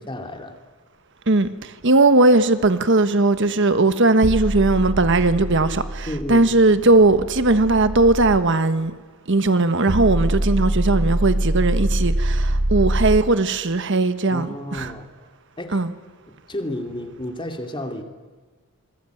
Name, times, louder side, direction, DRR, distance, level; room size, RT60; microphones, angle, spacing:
voice 1, 0.1-0.5 6.1-6.5 14.3-15.1 15.6-15.8 16.3-18.0, left 1 dB, 25° left, 2.5 m, -31 dB
voice 2, 1.3-8.9 9.3-14.9 15.7-15.9, right 2 dB, 55° right, 1.3 m, -18 dB
sound 1, 4.2-8.4 9.9-13.2, right 1 dB, 85° right, 1.4 m, -24 dB
26.5 x 21.0 x 9.3 m
head